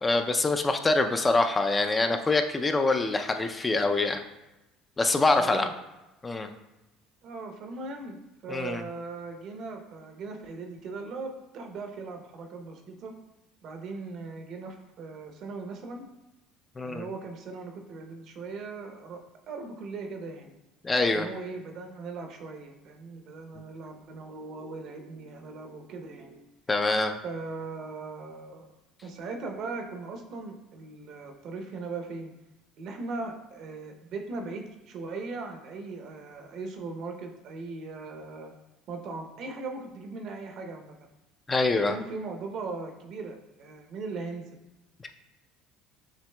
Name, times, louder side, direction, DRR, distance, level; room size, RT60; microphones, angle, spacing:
voice 1, 0.0-4.2 5.0-5.7 6.2-6.5 8.5-8.8 16.8-17.0 20.8-21.3 26.7-27.2 41.5-42.0, left 3 dB, 25° left, 6 dB, 0.4 m, -25 dB
voice 2, 5.3-5.7 7.2-8.2 8.4-13.1 13.6-16.1 16.8-20.5 21.1-26.4 27.2-28.7 29.0-32.3 32.8-38.5 38.9-40.9 41.9-44.5, right 3 dB, 60° right, 3 dB, 0.7 m, -39 dB
7.3 x 2.9 x 2.2 m, 1.0 s
supercardioid pair, 80°, 0 cm